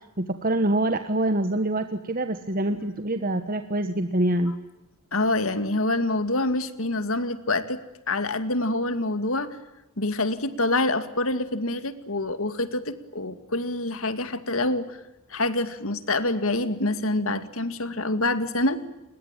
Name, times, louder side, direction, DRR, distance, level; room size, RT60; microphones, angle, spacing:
voice 1, 0.2-4.5, right 1 dB, 40° right, 8 dB, 1.4 m, -25 dB
voice 2, 5.1-7.8 8.1-9.6 10.0-15.0 15.3-18.8, left 2 dB, 70° left, 11 dB, 2.3 m, -26 dB
28.5 x 22.0 x 9.1 m, 0.95 s
head